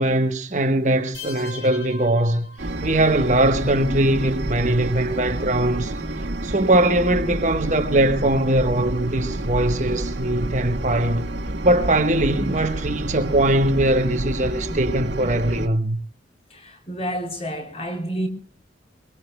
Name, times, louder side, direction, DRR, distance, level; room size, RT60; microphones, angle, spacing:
voice 1, 0.0-2.5 2.8-5.9 6.4-11.3 11.6-16.0, right 1 dB, 40° right, 1.1 m, -21 dB
sound 1, 1.1-3.1, left 3 dB, 55° left, 3.5 m, -39 dB
sound 2, 2.6-15.7, right 1 dB, 75° right, 1.8 m, -29 dB
voice 2, 16.5-18.3, right 1 dB, 35° left, 3.7 m, -29 dB
23.0 x 23.0 x 2.2 m
head